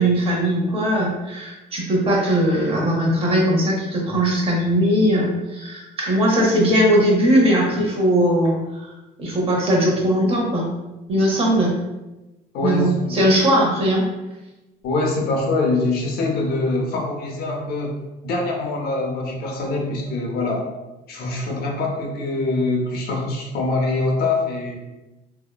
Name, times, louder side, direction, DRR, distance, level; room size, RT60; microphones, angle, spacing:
voice 1, 0.0-8.9 9.2-10.7 11.1-11.7 12.6-14.0, right 1 dB, 35° right, -1 dB, 0.7 m, -19 dB
voice 2, 12.5-13.2 14.8-18.0 18.2-20.6 21.1-24.8, left 2 dB, 65° left, 0 dB, 0.6 m, -24 dB
2.7 x 2.1 x 2.2 m, 1.0 s
cardioid pair, 110°, 17 cm